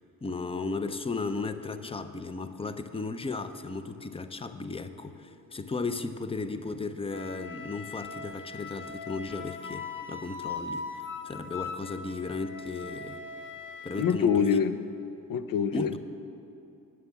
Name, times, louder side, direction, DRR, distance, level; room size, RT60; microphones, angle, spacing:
voice 1, 0.2-13.2 13.8-14.6 15.7-16.0, left 3 dB, 15° left, 10 dB, 0.6 m, -35 dB
Wind instrument woodwind instrument, 7.1-14.2, left 4 dB, 30° left, 1.1 m, -40 dB
voice 2, 14.0-14.8 15.3-15.9, left 7 dB, 60° left, 12 dB, 0.7 m, -25 dB
9.6 x 7.4 x 7.2 m, 2.7 s
supercardioid pair, 60°, 39 cm